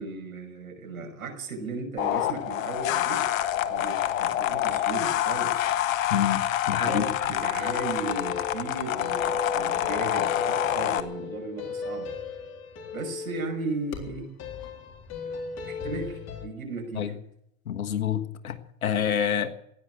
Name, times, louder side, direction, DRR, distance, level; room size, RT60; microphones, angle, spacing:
voice 1, 0.0-5.8 6.7-12.1 12.9-14.3 15.6-17.0, right 3 dB, 85° right, 2 dB, 5.9 m, -36 dB
sound 1, 2.0-11.0, left 12 dB, 70° left, 1.6 m, -27 dB
voice 2, 6.1-7.0 17.0-17.1 17.7-19.5, left 9 dB, 85° left, 7 dB, 1.6 m, -27 dB
sound 2, 6.9-16.5, left 4 dB, 40° left, 3.8 m, -36 dB
16.0 x 11.0 x 8.3 m, 0.75 s
hypercardioid pair, 95°, 41 cm